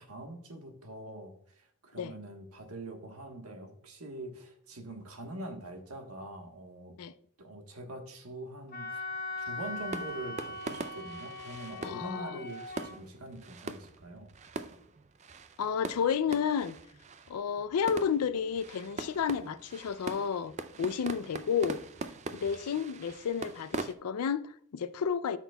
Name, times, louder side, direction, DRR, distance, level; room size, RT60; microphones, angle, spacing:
voice 1, 0.0-7.0 7.4-9.1 9.4-14.3 22.3-22.5, right 1 dB, 85° right, 1.3 m, -44 dB
Wind instrument woodwind instrument, 8.7-12.9, left 2 dB, 40° left, 0.9 m, -40 dB
sound 1, 9.1-23.9, right 3 dB, 30° right, 0.4 m, -42 dB
voice 2, 11.8-12.5 15.6-16.8 17.3-20.5 20.8-21.8 22.3-25.4, left 7 dB, 90° left, 0.4 m, -31 dB
13.0 x 6.0 x 2.3 m
head